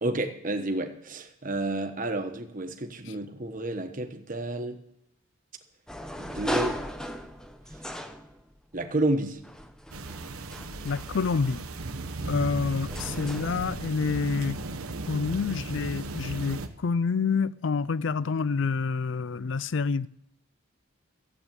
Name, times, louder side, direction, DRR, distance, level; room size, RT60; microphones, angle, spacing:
voice 1, 0.0-4.8 6.2-6.8 8.7-9.4, right 2 dB, 40° right, 1.2 m, -30 dB
sound 1, 5.9-8.8 9.4-13.6, equal, 5° left, 0.7 m, -37 dB
sound 2, 9.9-16.7, right 2 dB, 90° right, 1.1 m, -36 dB
voice 2, 10.8-11.6 12.2-14.6 15.1-20.1, left 5 dB, 60° left, 0.4 m, -28 dB
13.5 x 8.1 x 8.9 m
head